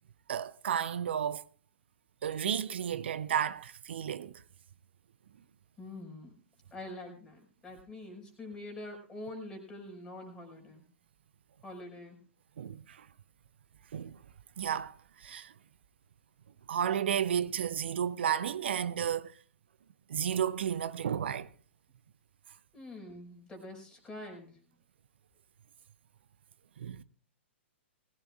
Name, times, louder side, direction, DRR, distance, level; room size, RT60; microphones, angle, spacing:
voice 1, 0.3-1.4 2.2-4.3 12.6-13.0 13.9-14.2 14.6-15.0 15.2-15.5 16.7-19.3 20.1-21.5 26.8-27.0, right 9 dB, 65° right, 0.6 m, -32 dB
voice 2, 5.8-6.3 6.7-10.8 11.6-12.2 22.7-24.6, left 1 dB, 10° left, 5.4 m, -45 dB
20.0 x 17.0 x 2.4 m
figure-of-eight pair, 110°, 6 cm